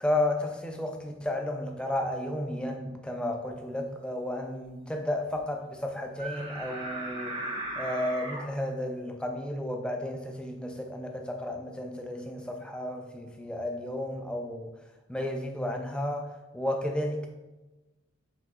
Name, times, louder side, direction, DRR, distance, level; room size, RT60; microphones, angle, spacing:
voice 1, 0.0-7.4 7.8-14.7 15.1-17.3, left 1 dB, 5° left, 2 dB, 0.3 m, -33 dB
sound 1, 6.2-8.4, right 2 dB, 25° right, 0.7 m, -36 dB
4.7 x 3.6 x 2.4 m, 1.1 s
head